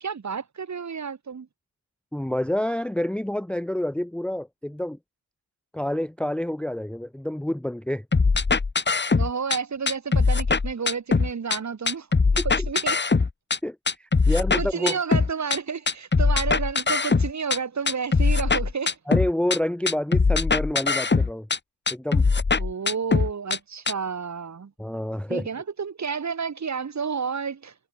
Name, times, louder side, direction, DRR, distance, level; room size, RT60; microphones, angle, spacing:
voice 1, 0.0-1.5 9.2-12.1 12.3-13.0 14.3-19.0 22.6-24.7 25.3-27.7, right 6 dB, 35° right, 2.2 m, -31 dB
voice 2, 2.1-5.0 5.7-8.0 8.5-8.6 12.4-12.5 13.6-15.0 19.1-21.5 21.9-22.3 24.8-25.5, left 1 dB, ahead, 0.9 m, -28 dB
sound 1, 8.1-9.6 9.9-11.6 11.9-13.6 13.9-15.6 15.9-17.6 17.9-19.6 19.9-21.6 21.9-23.6 23.9-24.0, left 4 dB, 25° left, 1.7 m, -21 dB
cardioid pair, 85°, 46 cm